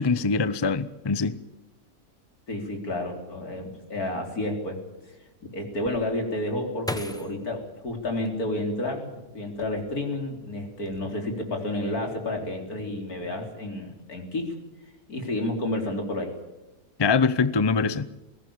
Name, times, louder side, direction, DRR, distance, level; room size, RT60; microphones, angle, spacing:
voice 1, 0.0-1.4 17.0-18.1, left 4 dB, 25° left, 15 dB, 0.6 m, -23 dB
voice 2, 2.5-4.8 5.4-14.5 15.1-16.4, left 1 dB, 80° left, 3 dB, 4.3 m, -30 dB
sound 1, 6.3-8.9 9.5-10.2 10.5-11.0, left 1 dB, 5° left, 1.2 m, -38 dB
22.0 x 18.0 x 8.7 m, 1.0 s
omnidirectional pair, 1.6 m